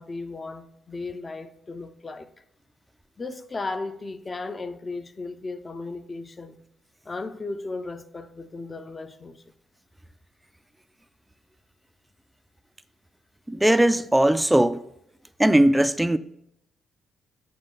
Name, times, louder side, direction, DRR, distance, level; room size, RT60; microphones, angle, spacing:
voice 1, 0.0-2.3 3.2-6.6 7.1-9.4, left 3 dB, 30° left, 0.7 m, -35 dB
voice 2, 13.5-14.8 15.4-16.2, right 1 dB, 10° right, 0.4 m, -19 dB
8.6 x 4.3 x 3.9 m
supercardioid pair, 65°, 0 cm